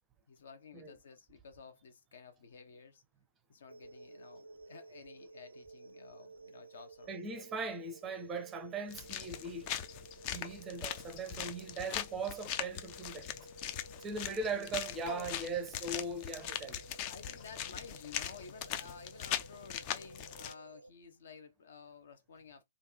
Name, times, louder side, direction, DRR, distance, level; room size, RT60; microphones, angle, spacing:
voice 1, 0.3-3.0 3.5-7.5 15.0-15.3 17.0-22.6, left 5 dB, 55° left, 0.8 m, -52 dB
sound 1, 3.7-20.9, right 2 dB, 75° right, 0.3 m, -55 dB
voice 2, 7.1-9.8 10.3-13.3 14.0-16.8, right 3 dB, 15° right, 0.6 m, -39 dB
sound 2, 8.9-20.5, left 10 dB, 30° left, 0.4 m, -41 dB
3.3 x 2.5 x 2.8 m
figure-of-eight pair, 120°, 0 cm